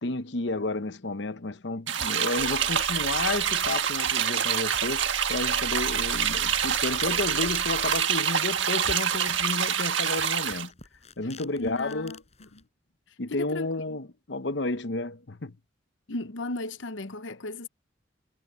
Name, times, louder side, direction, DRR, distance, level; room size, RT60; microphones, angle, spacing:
voice 1, 0.0-10.7 11.2-12.2 13.2-15.5, left 2 dB, 65° left, 0.9 m, -31 dB
sound 1, 1.9-10.7, right 8 dB, 85° right, 1.6 m, -26 dB
sound 2, 2.4-8.0, equal, 5° left, 1.2 m, -45 dB
sound 3, 5.4-12.6, left 5 dB, 35° left, 6.9 m, -52 dB
voice 2, 11.6-12.6 13.3-14.0 16.1-17.7, left 2 dB, 90° left, 0.9 m, -36 dB
head